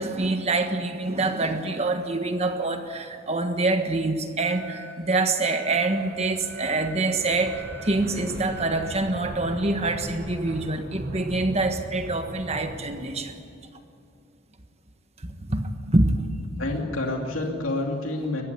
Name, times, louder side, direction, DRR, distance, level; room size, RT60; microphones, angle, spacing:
voice 1, 0.0-13.4 15.2-16.2, right 2 dB, 30° right, 7 dB, 1.5 m, -25 dB
Alarm, 4.4-4.9 5.4-5.9 6.4-6.9 7.4-7.9 8.4-8.9, right 2 dB, 90° right, 5.7 m, -45 dB
sound 1, 5.6-13.6, right 1 dB, 55° right, 6.6 m, -39 dB
voice 2, 16.6-18.4, left 2 dB, 90° left, 1 dB, 2.6 m, -28 dB
21.5 x 15.0 x 9.5 m, 2.6 s
head